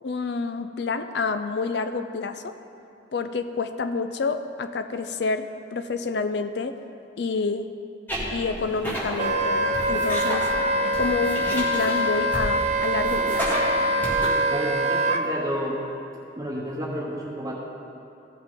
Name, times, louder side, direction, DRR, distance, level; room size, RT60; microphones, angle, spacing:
voice 1, 0.0-2.6 3.1-6.8 7.2-7.7 8.3-10.5 10.8-13.5, left 4 dB, 65° left, 10 dB, 0.4 m, -28 dB
sound 1, 8.1-14.3, equal, 10° left, 1.7 m, -32 dB
Wind instrument woodwind instrument, 9.2-15.2, right 1 dB, 35° right, 0.4 m, -24 dB
voice 2, 14.5-15.8 16.4-17.5, equal, 20° right, -4 dB, 1.1 m, -30 dB
15.0 x 5.9 x 3.7 m, 2.7 s
head